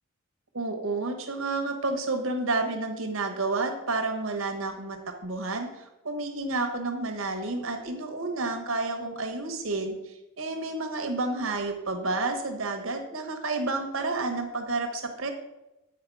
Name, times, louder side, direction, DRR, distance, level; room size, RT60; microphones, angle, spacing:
voice 1, 0.5-15.3, right 3 dB, 70° right, 5 dB, 1.2 m, -30 dB
8.8 x 4.6 x 4.7 m, 0.97 s
head